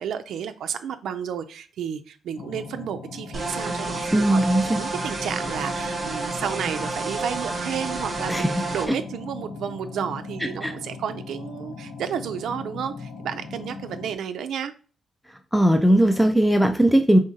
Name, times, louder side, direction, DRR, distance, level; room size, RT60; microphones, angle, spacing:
voice 1, 0.0-4.4 4.7-14.7, right 8 dB, 85° right, 8 dB, 0.4 m, -32 dB
sound 1, 2.4-14.1, left 4 dB, 55° left, 0.7 m, -39 dB
sound 2, 3.3-8.9, right 3 dB, 35° right, 1.0 m, -30 dB
voice 2, 4.1-4.8 8.3-8.5 10.6-10.7 15.5-17.2, right 1 dB, ahead, 5 dB, 0.3 m, -18 dB
4.9 x 3.7 x 2.7 m, 0.38 s
cardioid pair, 140°, 0 cm